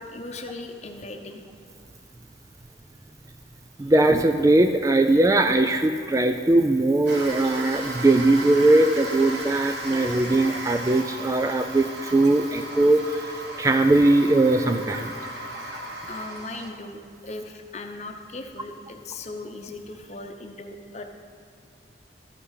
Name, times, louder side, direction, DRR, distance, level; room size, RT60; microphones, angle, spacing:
voice 1, 0.0-1.4 16.1-21.0, left 2 dB, 40° left, 4 dB, 0.8 m, -38 dB
voice 2, 3.8-15.1, right 2 dB, 20° right, 7 dB, 0.3 m, -20 dB
sound 1, 7.1-16.7, right 1 dB, 65° right, 1.3 m, -36 dB
12.5 x 5.9 x 5.7 m, 2.3 s
head